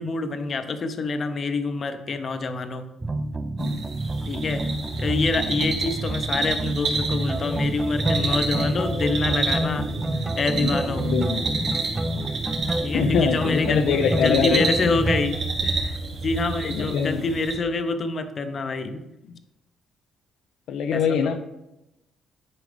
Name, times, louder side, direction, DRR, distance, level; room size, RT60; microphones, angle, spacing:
voice 1, 0.0-2.9 4.3-4.7 5.0-9.9 10.4-11.1 12.8-15.4 15.6-16.0 16.2-19.0 20.9-21.4, left 3 dB, 45° left, 9 dB, 0.7 m, -26 dB
sound 1, 3.0-15.3, right 2 dB, 20° right, 0.5 m, -28 dB
sound 2, 3.6-17.5, right 3 dB, 70° right, 2.0 m, -30 dB
voice 2, 10.5-11.5 12.9-14.7 16.8-17.2 20.7-21.4, left 6 dB, 80° left, 6 dB, 0.4 m, -24 dB
9.8 x 4.8 x 3.4 m, 0.92 s
cardioid pair, 90°, 0 cm